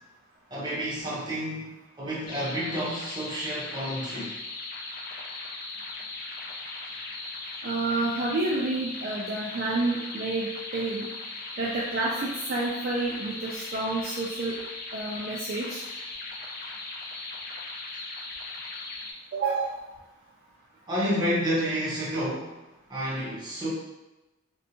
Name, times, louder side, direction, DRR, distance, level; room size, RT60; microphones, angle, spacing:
voice 1, 0.5-1.7 2.0-4.4 20.9-22.6 22.9-23.7, equal, 20° right, -7 dB, 0.7 m, -30 dB
sound 1, 2.3-19.1, left 3 dB, 40° left, 0.3 m, -38 dB
voice 2, 7.6-11.1 11.6-14.5 14.9-15.8 19.3-19.8, right 2 dB, 45° right, -4 dB, 0.3 m, -29 dB
2.6 x 2.2 x 2.7 m, 1.0 s
head